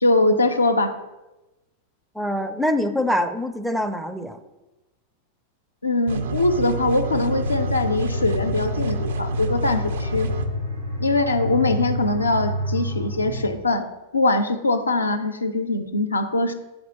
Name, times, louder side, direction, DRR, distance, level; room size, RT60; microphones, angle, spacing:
voice 1, 0.0-0.9 5.8-10.3 11.0-13.9 14.1-16.5, left 2 dB, 80° left, 7 dB, 0.4 m, -22 dB
voice 2, 2.2-4.4, left 1 dB, 5° right, 9 dB, 0.4 m, -24 dB
sound 1, 6.1-10.5, right 4 dB, 60° right, 0.4 m, -28 dB
sound 2, 7.2-13.5, equal, 85° right, 1.2 m, -28 dB
7.8 x 4.2 x 2.8 m, 1.0 s
figure-of-eight pair, 90°, 0 cm